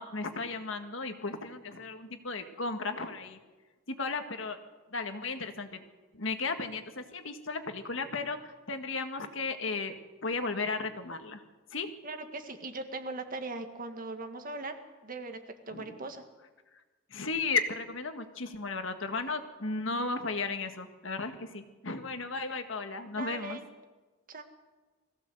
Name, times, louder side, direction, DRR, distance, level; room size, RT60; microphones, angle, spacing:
voice 1, 0.0-3.4 3.9-4.6 4.9-5.8 6.1-8.4 8.7-11.4 11.7-11.9 15.7-16.0 17.1-23.6, left 3 dB, 65° left, 7 dB, 1.8 m, -35 dB
voice 2, 12.0-14.7 15.0-15.4 15.7-16.2 23.1-23.7 24.3-24.4, right 2 dB, 45° right, 6 dB, 1.9 m, -39 dB
21.0 x 16.0 x 7.8 m, 1.3 s
head